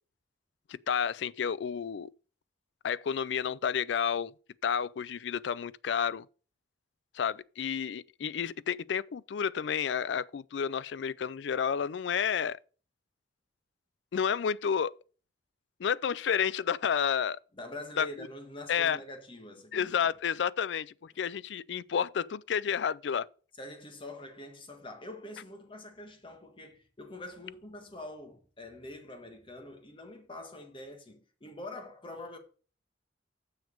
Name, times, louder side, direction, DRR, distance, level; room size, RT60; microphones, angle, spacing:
voice 1, 0.7-2.1 2.8-4.3 4.6-6.2 7.1-12.6 14.1-14.9 15.8-17.4 18.0-18.3 18.7-19.0 19.7-23.3, left 7 dB, 75° left, 0.4 m, -30 dB
voice 2, 17.5-20.1 23.6-32.4, left 1 dB, 30° left, 1.6 m, -45 dB
7.2 x 6.1 x 6.6 m
head